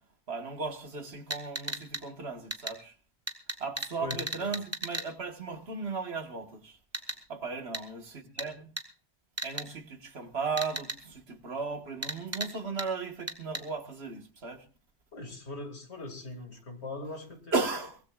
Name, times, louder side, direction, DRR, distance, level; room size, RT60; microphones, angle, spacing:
voice 1, 0.3-3.0 3.6-6.8 7.3-8.7 9.4-14.7 17.5-18.0, right 4 dB, 70° right, 1.9 m, -36 dB
sound 1, 1.3-2.0 2.5-2.7 3.3-5.1 6.9-7.2 7.7-7.8 8.4-8.5 8.8-8.9 9.4-9.7 10.6-11.0 12.0-12.5 12.8-12.9 13.3-13.6, right 1 dB, 15° right, 1.7 m, -35 dB
voice 2, 4.0-4.6 15.1-17.5, left 3 dB, 75° left, 2.8 m, -41 dB
23.0 x 17.5 x 2.5 m
omnidirectional pair, 1.1 m